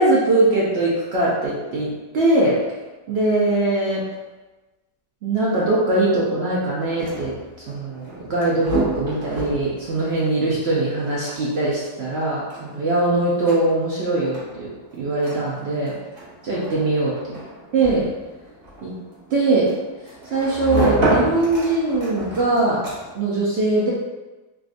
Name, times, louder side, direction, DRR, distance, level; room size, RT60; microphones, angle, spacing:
voice 1, 0.0-2.6 3.1-4.0 5.2-7.3 7.7-15.9 16.4-17.1 17.7-18.0 18.8-18.9 19.3-19.7 20.3-22.8 23.1-23.9, right 2 dB, 80° right, -6 dB, 0.5 m, -21 dB
sound 1, 6.8-23.3, right 1 dB, 40° right, 0.9 m, -30 dB
3.5 x 2.4 x 2.5 m, 1.2 s
omnidirectional pair, 1.8 m